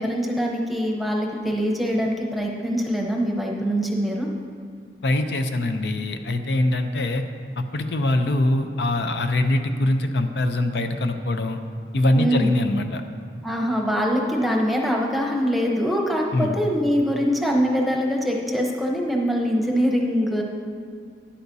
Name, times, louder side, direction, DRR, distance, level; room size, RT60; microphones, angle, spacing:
voice 1, 0.0-4.3 12.1-12.5 13.4-20.4, equal, ahead, -1 dB, 0.9 m, -23 dB
voice 2, 5.0-7.2 7.6-11.6 11.9-13.0 16.3-16.6, left 1 dB, 75° left, 7 dB, 0.6 m, -23 dB
12.5 x 10.0 x 2.7 m, 2.2 s
head